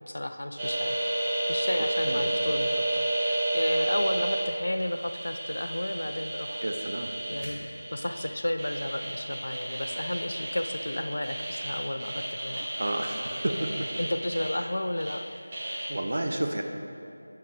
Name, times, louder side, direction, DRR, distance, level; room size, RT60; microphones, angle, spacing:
voice 1, 0.1-1.0 1.5-6.7 7.3-12.6 14.0-15.2, left 1 dB, 70° left, 8 dB, 0.5 m, -32 dB
sound 1, 0.6-15.1 15.5-15.9, right 1 dB, 25° right, 1.2 m, -31 dB
voice 2, 6.6-7.1 12.8-13.9 15.9-16.6, right 1 dB, 60° right, 4 dB, 0.7 m, -31 dB
7.4 x 5.9 x 4.5 m, 2.6 s
figure-of-eight pair, 170°, 0 cm